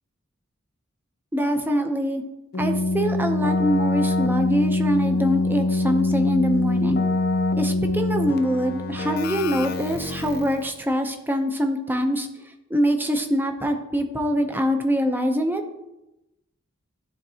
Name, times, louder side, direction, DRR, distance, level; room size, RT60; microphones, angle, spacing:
voice 1, 1.3-2.2 2.6-7.0 7.6-12.3 12.7-15.6, equal, 10° right, 5 dB, 0.5 m, -24 dB
Keyboard (musical), 2.5-10.7, left 2 dB, 50° left, 0.5 m, -24 dB
11.5 x 3.9 x 2.7 m, 0.94 s
head